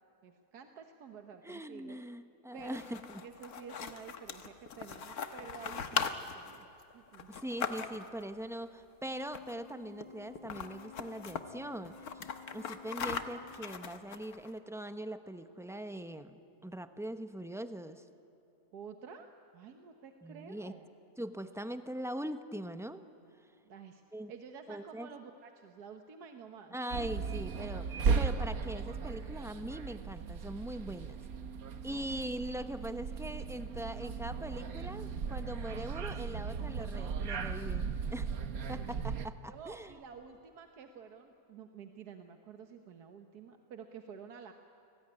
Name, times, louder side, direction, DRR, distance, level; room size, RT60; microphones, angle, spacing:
voice 1, 0.2-2.0 2.5-2.8 3.2-6.7 6.9-7.3 18.7-19.3 19.5-20.9 23.6-24.0 24.3-26.8 39.5-44.5, right 6 dB, 80° right, 6 dB, 1.7 m, -50 dB
voice 2, 1.4-3.0 7.3-12.2 12.5-18.0 20.2-20.7 21.2-23.0 24.1-24.3 24.7-25.1 26.7-31.2 31.8-38.3 38.7-40.0, right 1 dB, ahead, 9 dB, 0.7 m, -41 dB
sound 1, 2.6-8.2 9.3-9.7 10.0-10.1 10.4-11.4 11.9-14.5, left 6 dB, 70° left, 1.7 m, -40 dB
Organ, 9.1-14.2, left 6 dB, 35° left, 2.0 m, -54 dB
sound 2, 26.9-39.3, right 5 dB, 65° right, 1.5 m, -36 dB
29.5 x 20.0 x 9.9 m, 3.0 s
omnidirectional pair, 1.7 m